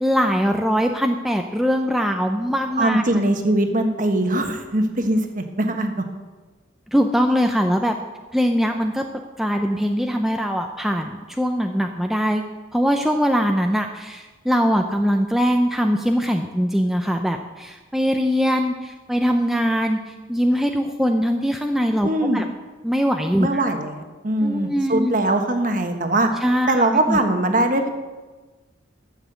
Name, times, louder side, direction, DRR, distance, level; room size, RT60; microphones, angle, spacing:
voice 1, 0.0-3.0 6.9-7.9 8.3-9.0 9.4-12.4 12.7-22.4 22.8-23.7 24.4-25.1 26.4-27.2, equal, ahead, 3 dB, 0.5 m, -22 dB
voice 2, 2.8-6.0 22.0-22.4 23.4-26.3 26.7-27.9, right 1 dB, 40° right, 5 dB, 1.3 m, -21 dB
12.5 x 7.2 x 8.0 m, 1.3 s
head